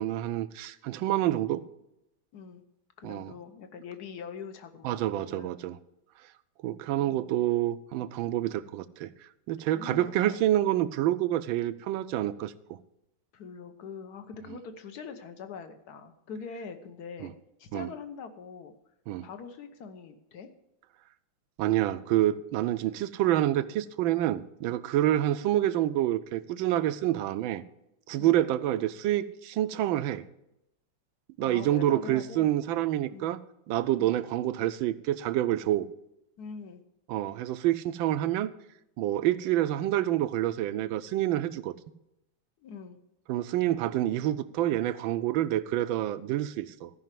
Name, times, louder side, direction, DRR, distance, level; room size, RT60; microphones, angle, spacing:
voice 1, 0.0-1.6 3.0-3.3 4.8-5.8 6.6-9.1 9.5-12.5 17.2-17.3 17.7-17.9 19.1-19.3 21.6-27.6 28.1-30.2 31.4-33.4 33.7-35.9 37.1-38.5 39.0-41.7 43.3-46.9, right 13 dB, 80° right, 14 dB, 1.4 m, -27 dB
voice 2, 2.3-2.6 3.0-5.5 6.9-7.3 9.7-10.4 13.3-17.3 17.6-18.7 19.2-20.5 28.2-28.4 31.4-32.5 33.1-33.3 34.0-34.2 36.4-36.8 42.6-43.0, left 5 dB, 55° left, 8 dB, 1.4 m, -43 dB
14.0 x 5.7 x 7.5 m, 0.85 s
omnidirectional pair, 2.2 m